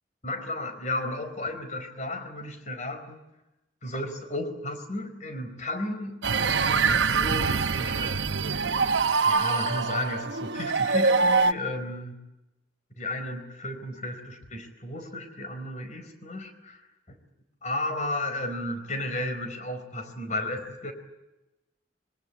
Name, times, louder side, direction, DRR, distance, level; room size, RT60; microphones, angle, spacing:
voice 1, 0.2-3.2 3.8-8.1 9.2-12.2 13.0-16.8 17.1-17.2 17.6-20.9, left 1 dB, 40° left, 8 dB, 4.5 m, -33 dB
sound 1, 6.2-11.5, right 4 dB, 75° right, 1.0 m, -24 dB
26.0 x 23.0 x 8.5 m, 0.98 s
head